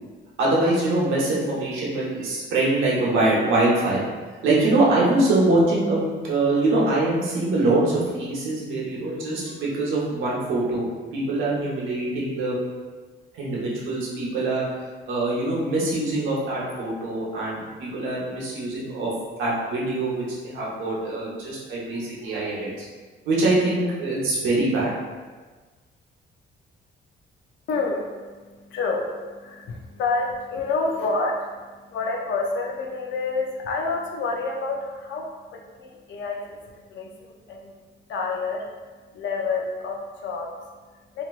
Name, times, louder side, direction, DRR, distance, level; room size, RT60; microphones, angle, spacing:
voice 1, 0.4-4.0 4.4-10.8 11.1-12.6 13.3-14.6 15.1-19.1 19.4-22.9 23.3-24.9, right 2 dB, 85° right, -5 dB, 0.9 m, -23 dB
voice 2, 27.7-41.2, left 3 dB, 70° left, 0 dB, 0.6 m, -29 dB
3.0 x 2.7 x 2.4 m, 1.4 s
cardioid pair, 90°, 20 cm